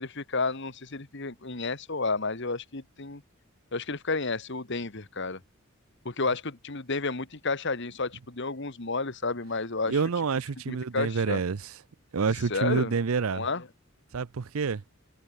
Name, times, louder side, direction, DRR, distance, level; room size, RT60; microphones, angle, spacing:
voice 1, 0.0-3.2 3.7-5.4 6.0-10.0 10.7-11.4 12.5-12.9 13.3-13.6, left 3 dB, 55° left, 1.6 m, -31 dB
voice 2, 9.9-11.7 12.1-13.5 14.1-14.8, right 5 dB, 75° right, 0.6 m, -28 dB
head